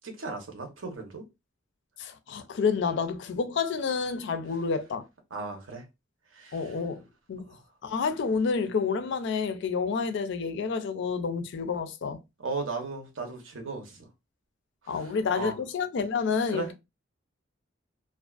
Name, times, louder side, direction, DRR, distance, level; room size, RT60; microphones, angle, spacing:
voice 1, 0.0-1.2 5.3-5.8 6.3-6.6 12.4-14.1 15.0-15.5 16.5-16.7, right 3 dB, 85° right, 0.8 m, -36 dB
voice 2, 2.0-5.0 6.5-7.5 7.8-12.2 14.9-16.7, left 5 dB, 65° left, 0.4 m, -29 dB
2.5 x 2.3 x 2.3 m
head